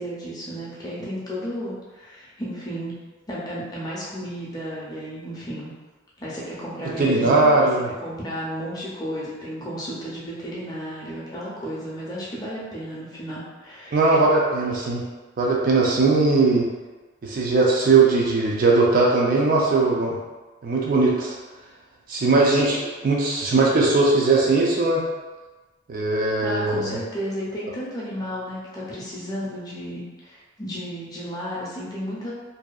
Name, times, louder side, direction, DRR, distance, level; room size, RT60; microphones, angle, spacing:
voice 1, 0.0-2.9 3.3-5.7 6.2-7.7 8.0-14.1 22.5-22.8 26.4-32.3, equal, 20° left, -7 dB, 0.5 m, -33 dB
voice 2, 7.0-7.9 13.9-15.0 15.4-16.7 17.2-20.2 20.6-21.3 22.1-22.8 23.0-25.0 25.9-27.0, right 3 dB, 45° right, -3 dB, 0.4 m, -19 dB
2.6 x 2.3 x 2.3 m, 1.2 s
head